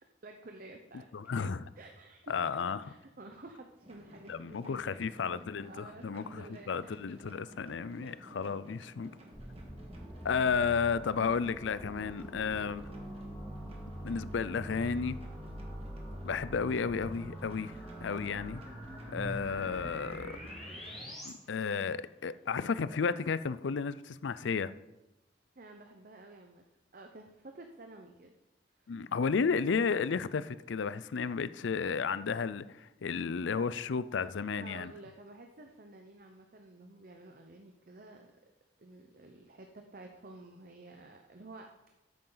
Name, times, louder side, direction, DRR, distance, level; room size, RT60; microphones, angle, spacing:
voice 1, 0.0-1.3 1.8-2.3 2.8-7.1 11.9-12.1 25.6-26.6 26.9-28.3 28.8-28.9 34.6-38.3 38.8-41.9, right 2 dB, 50° right, 0.8 m, -52 dB
voice 2, 1.1-1.6 2.3-2.8 4.3-9.1 10.2-12.8 14.0-15.2 16.2-18.6 19.1-20.4 21.2-24.7 28.9-34.9, left 5 dB, 80° left, 0.5 m, -33 dB
sound 1, 3.8-21.1, equal, 35° right, 1.7 m, -55 dB
sound 2, 9.3-21.3, equal, ahead, 4.0 m, -44 dB
13.0 x 8.8 x 4.0 m
head